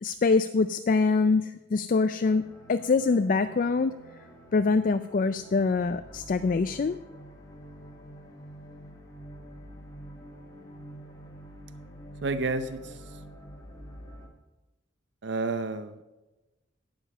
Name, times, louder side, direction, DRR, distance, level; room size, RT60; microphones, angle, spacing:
voice 1, 0.0-3.9 4.5-7.0, left 4 dB, 45° left, 10 dB, 0.4 m, -24 dB
sound 1, 2.2-14.3, equal, 20° left, 1.7 m, -47 dB
voice 2, 12.2-13.0 15.2-16.0, right 3 dB, 65° right, 11 dB, 0.7 m, -30 dB
12.0 x 8.9 x 5.5 m, 1.1 s
head